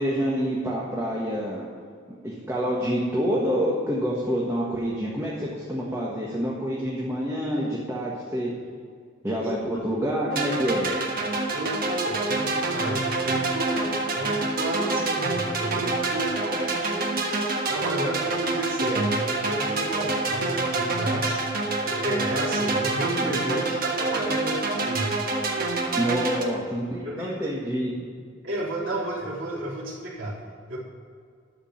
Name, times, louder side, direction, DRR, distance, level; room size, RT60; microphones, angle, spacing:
voice 1, 0.0-1.6 2.2-8.5 9.2-10.9 23.4-23.5 26.0-27.9, equal, 15° right, -5 dB, 1.5 m, -27 dB
sound 1, 10.3-26.4, right 2 dB, 45° right, 1.4 m, -27 dB
voice 2, 10.8-13.8 14.1-17.1 17.7-21.4 21.8-25.2 25.5-25.6 26.2-26.4 27.0-27.5 28.4-30.4 30.7-30.8, right 1 dB, 80° right, -5 dB, 3.6 m, -32 dB
12.5 x 5.1 x 8.8 m, 2.1 s
head